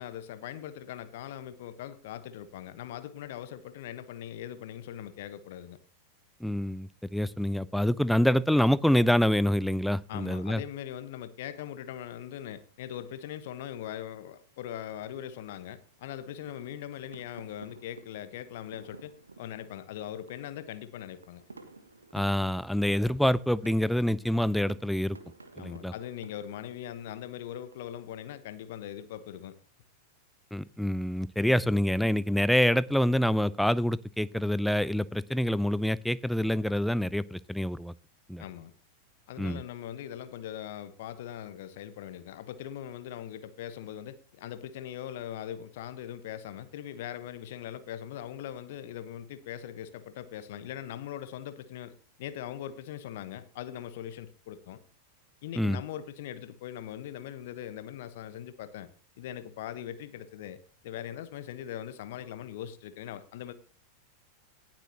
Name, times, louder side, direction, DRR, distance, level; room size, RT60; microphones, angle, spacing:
voice 1, 0.0-5.8 10.1-21.4 25.6-29.6 38.4-38.7 39.3-54.8 55.4-58.9 59.2-60.6 60.8-63.5, left 11 dB, 55° left, 1.1 m, -41 dB
voice 2, 6.4-10.6 22.1-25.2 25.6-25.9 30.5-37.9 38.3-38.4 39.4-39.6 55.6-55.8, equal, ahead, 0.4 m, -26 dB
sound 1, 11.5-28.1, right 3 dB, 75° right, 1.4 m, -55 dB
18.5 x 7.5 x 2.9 m
figure-of-eight pair, 90°, 0 cm